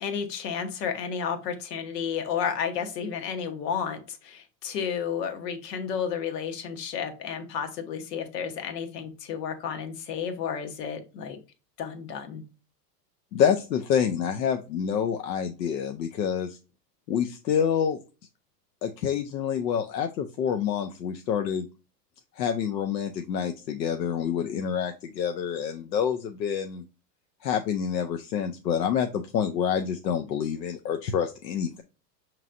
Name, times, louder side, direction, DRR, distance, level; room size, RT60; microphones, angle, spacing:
voice 1, 0.0-11.4 11.8-12.4, left 7 dB, 75° left, 6 dB, 1.1 m, -32 dB
voice 2, 13.3-16.6 17.1-18.0 18.8-21.7 22.4-26.8 27.4-31.8, left 8 dB, 90° left, 5 dB, 0.6 m, -27 dB
5.8 x 3.1 x 2.5 m, 0.33 s
hypercardioid pair, 95°, 49 cm